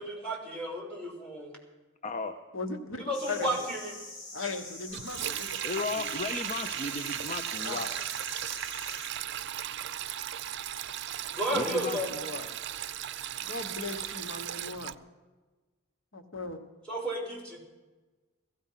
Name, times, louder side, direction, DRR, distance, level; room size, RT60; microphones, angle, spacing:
voice 1, 0.0-1.5 3.1-3.9 11.3-12.1 16.9-17.6, right 1 dB, 5° left, -1 dB, 3.8 m, -32 dB
voice 2, 2.0-2.3 5.6-7.9 11.5-12.0, left 3 dB, 35° left, 8 dB, 0.7 m, -35 dB
voice 3, 2.5-3.5 4.3-6.2 7.6-7.8 11.7-12.5 13.4-14.9 16.1-16.6, left 3 dB, 85° left, 6 dB, 1.4 m, -38 dB
sound 1, 3.1-9.1, left 2 dB, 60° left, 3.6 m, -45 dB
Sink (filling or washing), 4.9-14.9, right 11 dB, 60° right, 0.5 m, -36 dB
16.0 x 16.0 x 5.7 m, 1.2 s
head